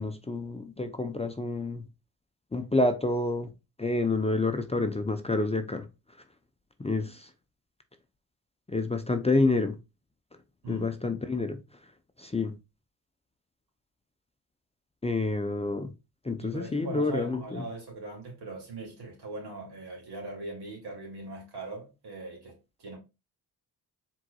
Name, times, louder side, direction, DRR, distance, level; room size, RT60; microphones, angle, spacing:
voice 1, 0.0-1.9 2.5-3.5 3.8-5.9 6.8-7.3 8.7-9.8 10.7-11.6 12.2-12.5 15.0-15.9 16.2-17.6, left 2 dB, 15° left, 0.6 m, -28 dB
voice 2, 16.4-23.0, right 2 dB, 70° right, 2.6 m, -40 dB
4.6 x 3.8 x 2.3 m
supercardioid pair, 55°, 41 cm